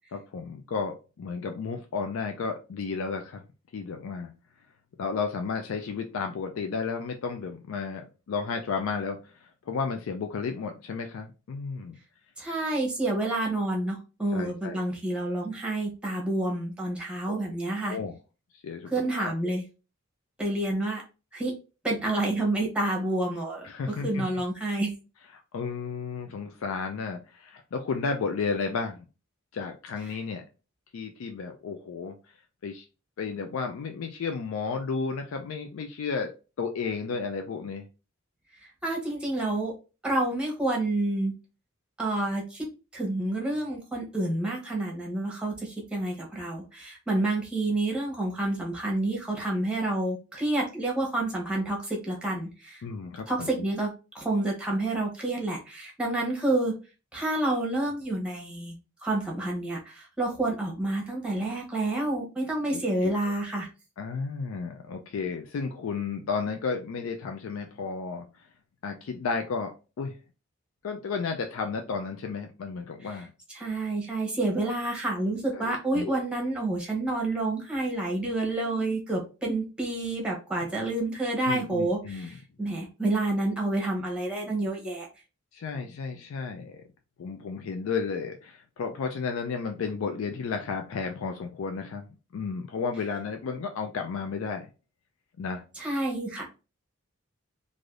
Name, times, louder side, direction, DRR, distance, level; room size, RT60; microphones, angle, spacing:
voice 1, 0.1-3.4 3.7-4.3 5.0-12.0 14.3-14.8 17.3-17.4 17.9-18.2 18.5-19.5 23.6-24.2 25.3-29.0 29.5-30.4 30.9-32.1 32.6-32.9 33.2-36.3 36.6-37.8 52.8-53.5 62.7-63.3 64.0-68.5 68.8-69.7 70.0-70.2 70.8-73.3 75.5-76.1 81.5-82.3 85.5-86.8 87.2-92.0 92.3-94.7 95.4-95.6, left 5 dB, 75° left, 5 dB, 0.4 m, -33 dB
voice 2, 12.4-18.0 18.9-19.6 20.4-21.0 21.3-21.5 21.8-24.9 38.8-39.7 40.0-41.3 42.0-42.7 42.9-52.8 53.3-56.7 57.1-58.7 59.0-63.7 73.5-82.3 82.6-85.1 95.8-96.4, right 2 dB, 5° right, -1 dB, 0.8 m, -29 dB
3.3 x 2.6 x 2.4 m, 0.32 s
head